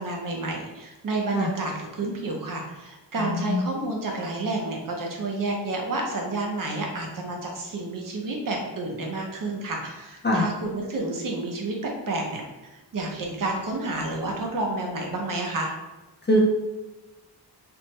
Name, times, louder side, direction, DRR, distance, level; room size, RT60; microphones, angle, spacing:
voice 1, 0.0-15.7, right 2 dB, 50° right, 0 dB, 0.6 m, -30 dB
voice 2, 3.2-3.6 10.2-10.5 16.3-16.4, left 1 dB, 30° left, -2 dB, 0.3 m, -22 dB
3.3 x 2.1 x 3.0 m, 1.1 s
wide cardioid pair, 160°, 41 cm